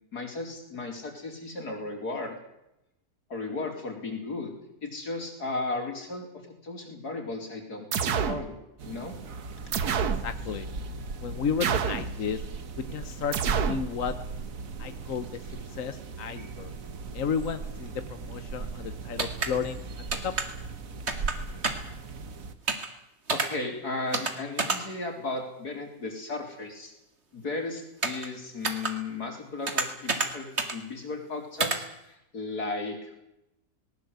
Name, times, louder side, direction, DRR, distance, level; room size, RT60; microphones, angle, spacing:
voice 1, 0.1-2.4 3.3-4.5 4.8-8.5 8.8-9.2 23.3-26.9 27.3-33.2, left 3 dB, 80° left, 3 dB, 4.6 m, -35 dB
sound 1, 7.9-8.4 9.7-10.3 11.6-12.1 13.3-13.8, right 7 dB, 75° right, 1.7 m, -27 dB
sound 2, 8.8-22.5, right 4 dB, 60° right, 1.8 m, -38 dB
voice 2, 10.2-10.7 11.2-12.4 12.9-14.1 14.8-15.4 15.7-16.7 17.1-20.3, left 6 dB, 60° left, 10 dB, 1.4 m, -33 dB
sound 3, 19.2-19.5 20.1-20.5 21.1-21.3 21.6-21.9 22.7-22.9 23.3-23.5 24.1-24.3 24.6-24.8 28.0-28.3 28.6-28.9 29.7-30.3 30.6-30.8 31.6-31.8, right 3 dB, 45° right, 2.4 m, -27 dB
19.5 x 18.5 x 8.2 m, 0.86 s
omnidirectional pair, 1.7 m